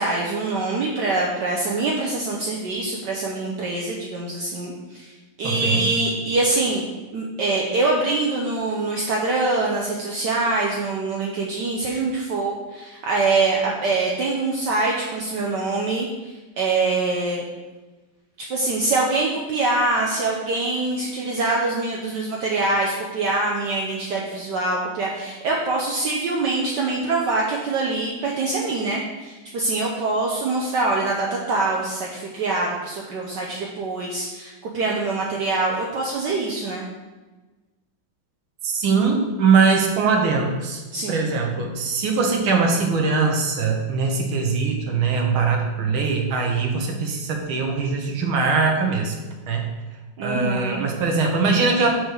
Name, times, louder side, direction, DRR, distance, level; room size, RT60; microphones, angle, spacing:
voice 1, 0.0-5.1 5.4-6.9 7.1-17.4 18.5-36.9 40.9-41.3 50.2-50.9, right 3 dB, 65° right, -2 dB, 1.4 m, -24 dB
voice 2, 5.4-5.8 38.6-40.8 41.1-49.1 49.5-49.6 50.2-51.9, right 4 dB, 90° right, 2 dB, 2.0 m, -21 dB
5.4 x 4.7 x 6.4 m, 1.2 s
omnidirectional pair, 2.2 m